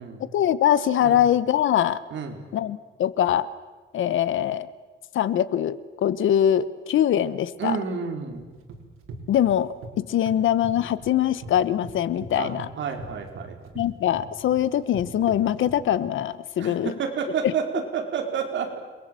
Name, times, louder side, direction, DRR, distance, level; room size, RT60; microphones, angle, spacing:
voice 1, 0.2-2.0 2.5-3.5 3.9-4.7 5.1-7.8 9.3-12.7 13.7-16.9 17.4-17.5, left 10 dB, 70° left, 16 dB, 1.1 m, -23 dB
voice 2, 2.1-2.4 7.6-8.5 12.4-13.6 16.6-18.8, right 6 dB, 65° right, 3 dB, 4.3 m, -30 dB
sound 1, 8.3-9.9 10.3-11.5 11.8-16.1, right 3 dB, 90° right, 5.0 m, -41 dB
30.0 x 22.0 x 7.7 m, 1.3 s
cardioid pair, 160°, 21 cm